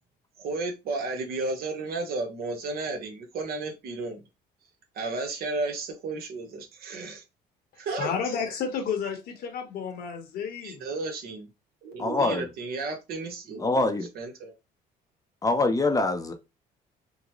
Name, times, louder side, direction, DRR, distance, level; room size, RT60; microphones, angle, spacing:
voice 1, 0.4-4.2 4.9-7.2 7.8-8.1 10.6-11.5 11.8-14.5, right 3 dB, 65° right, 1.1 m, -33 dB
voice 2, 7.9-10.8, left 6 dB, 65° left, 1.1 m, -31 dB
voice 3, 12.0-12.5 13.6-14.1 15.4-16.3, left 2 dB, 20° left, 0.6 m, -24 dB
3.8 x 2.1 x 3.0 m
cardioid pair, 110°, 17 cm